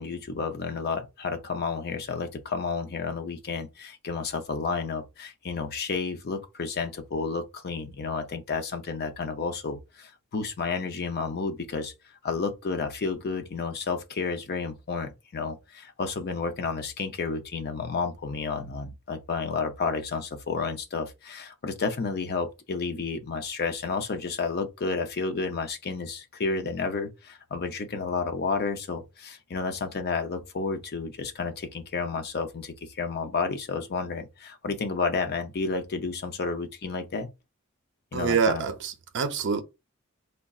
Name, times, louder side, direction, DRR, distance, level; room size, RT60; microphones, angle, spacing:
voice 1, 0.0-11.9 12.2-37.3 38.1-38.6, left 4 dB, 50° left, 0.5 m, -31 dB
voice 2, 38.1-39.6, right 5 dB, 60° right, 0.5 m, -26 dB
3.6 x 2.2 x 2.3 m
head